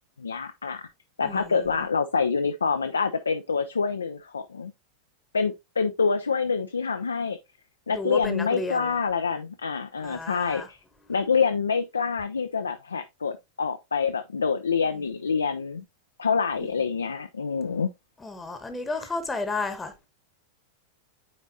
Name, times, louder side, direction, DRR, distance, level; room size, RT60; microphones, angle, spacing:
voice 1, 0.2-0.9 1.2-4.7 5.3-7.4 7.9-10.8 11.1-15.8 16.2-17.9, left 5 dB, 75° left, 0.4 m, -26 dB
voice 2, 1.2-1.7 7.9-8.9 10.0-10.7 16.6-16.7 18.2-20.1, left 3 dB, 10° left, 1.0 m, -33 dB
9.4 x 4.1 x 2.7 m
figure-of-eight pair, 90°, 0 cm